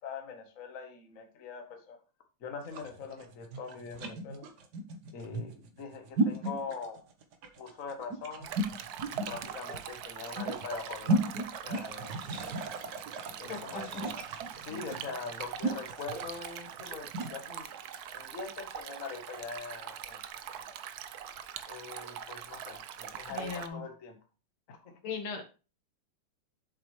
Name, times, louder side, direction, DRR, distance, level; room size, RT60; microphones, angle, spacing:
voice 1, 0.0-2.0 2.4-4.5 5.1-7.0 7.6-8.5 9.3-11.3 11.6-12.5 13.4-14.1 14.5-17.7 18.1-20.7 21.7-24.2 24.7-25.0, left 5 dB, 45° left, 4 dB, 1.4 m, -43 dB
sound 1, 2.6-17.4, right 1 dB, 55° right, 1.5 m, -35 dB
voice 2, 6.3-6.6 13.5-14.2 14.7-14.8 23.3-23.8 25.0-25.4, left 5 dB, 70° left, 4 dB, 2.4 m, -39 dB
Stream, 8.4-23.7, right 9 dB, 70° right, 0.9 m, -42 dB
7.7 x 7.4 x 3.2 m, 0.34 s
omnidirectional pair, 2.4 m